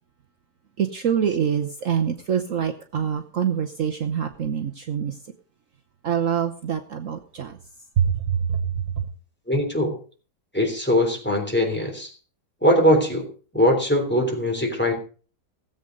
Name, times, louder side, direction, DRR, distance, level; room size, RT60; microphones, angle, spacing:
voice 1, 0.8-5.2 6.0-7.6 8.0-9.0, right 8 dB, 55° right, 5 dB, 1.2 m, -25 dB
voice 2, 9.5-10.0 10.5-12.1 12.6-13.3 13.5-15.0, equal, 5° left, 2 dB, 3.4 m, -21 dB
17.5 x 8.1 x 5.2 m, 0.39 s
omnidirectional pair, 1.7 m